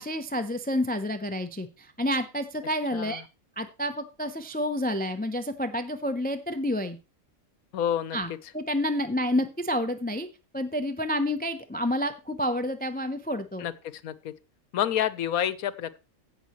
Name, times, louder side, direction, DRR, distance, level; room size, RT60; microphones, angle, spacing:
voice 1, 0.0-3.2 3.6-7.0 8.1-10.3 10.5-13.6, left 1 dB, 15° left, 9 dB, 0.3 m, -29 dB
voice 2, 7.7-8.2 13.6-13.7 14.0-14.3 14.7-16.0, left 10 dB, 80° left, 15 dB, 1.2 m, -28 dB
16.5 x 6.2 x 3.0 m, 0.29 s
omnidirectional pair, 1.5 m